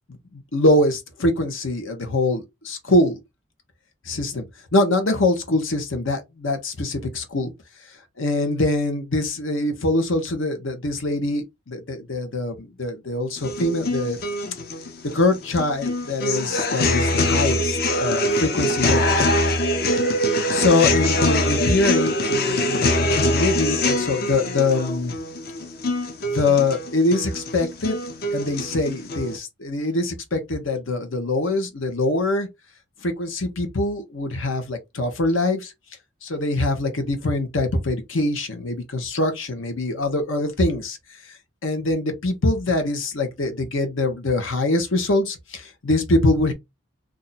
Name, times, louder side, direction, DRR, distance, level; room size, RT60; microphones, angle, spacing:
voice 1, 0.1-3.2 4.1-4.4 4.7-7.5 8.2-14.2 15.1-19.2 20.5-25.2 26.2-28.0 28.3-32.5 33.0-35.7 36.2-41.0 41.6-46.5, left 2 dB, 85° left, 1.0 m, -23 dB
sound 1, 13.4-29.4, left 1 dB, 50° left, 0.6 m, -23 dB
2.7 x 2.4 x 4.0 m
head